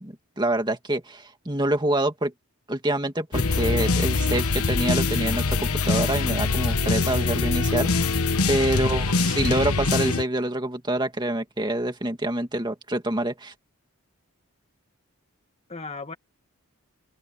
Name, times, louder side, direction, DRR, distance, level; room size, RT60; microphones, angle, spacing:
voice 1, 0.0-2.3 2.7-8.2 8.5-13.5, right 1 dB, 20° right, 2.2 m, -26 dB
sound 1, 3.3-10.2, left 3 dB, 80° left, 1.2 m, -23 dB
voice 2, 8.7-9.3 15.7-16.1, left 3 dB, 30° left, 1.8 m, -38 dB
open air
head